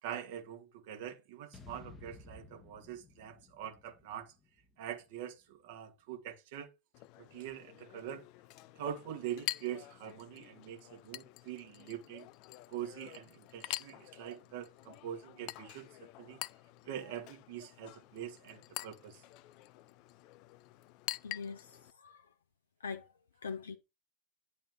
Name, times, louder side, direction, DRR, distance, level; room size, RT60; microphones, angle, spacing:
voice 1, 0.0-4.3 4.8-6.7 7.2-8.2 8.8-12.3 12.7-15.9 16.2-16.4 16.9-19.2, right 10 dB, 50° right, 1.9 m, -44 dB
sound 1, 1.5-5.8, left 3 dB, 25° left, 1.2 m, -56 dB
Chink clink, 6.9-21.9, left 18 dB, 40° left, 0.5 m, -47 dB
voice 2, 21.2-22.3 22.8-23.8, left 5 dB, 70° left, 0.9 m, -43 dB
10.5 x 4.2 x 5.9 m
figure-of-eight pair, 90°, 0 cm